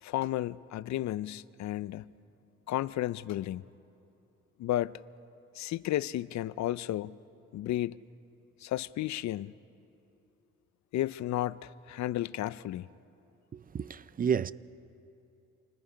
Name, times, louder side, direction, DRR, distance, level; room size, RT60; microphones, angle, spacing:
voice 1, 0.0-2.1 2.7-3.7 4.6-5.0 5.5-7.2 7.5-8.0 8.6-9.5 10.9-12.9, left 14 dB, 65° left, 0.5 m, -33 dB
voice 2, 13.5-14.5, right 7 dB, 30° right, 0.5 m, -31 dB
28.0 x 20.0 x 5.1 m
cardioid pair, 90°, 30 cm